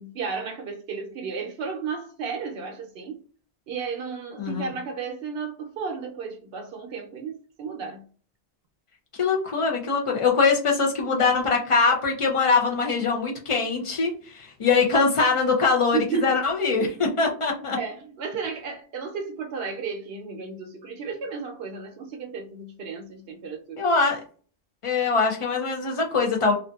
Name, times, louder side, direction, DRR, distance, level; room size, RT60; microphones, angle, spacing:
voice 1, 0.0-3.2 3.7-8.0 15.9-16.4 17.7-23.8, right 5 dB, 70° right, 0.8 m, -33 dB
voice 2, 4.4-4.7 9.2-17.8 23.8-24.2 24.8-26.5, left 4 dB, 45° left, 0.4 m, -22 dB
2.5 x 2.5 x 2.3 m
omnidirectional pair, 1.1 m